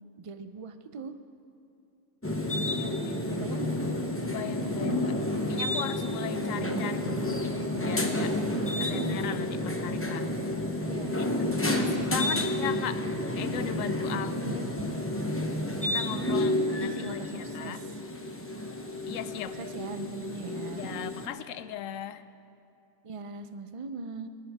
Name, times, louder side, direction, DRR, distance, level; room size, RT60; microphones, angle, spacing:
voice 1, 0.2-1.1 3.3-3.8 4.4-5.0 6.2-6.8 8.8-9.2 10.8-11.2 11.6-13.0 13.8-14.8 15.8-17.9 19.6-21.0 23.0-24.3, right 3 dB, 40° right, 10 dB, 0.5 m, -40 dB
sound 1, 2.2-21.3, left 1 dB, 10° left, 0.8 m, -30 dB
voice 2, 2.5-3.2 3.5-3.6 4.2-5.2 5.5-8.4 8.8-10.3 11.2-13.0 13.3-14.7 15.8-17.8 19.1-19.6 20.7-22.2, left 10 dB, 85° left, 13 dB, 1.0 m, -38 dB
24.0 x 11.5 x 3.5 m, 2.6 s
omnidirectional pair, 1.3 m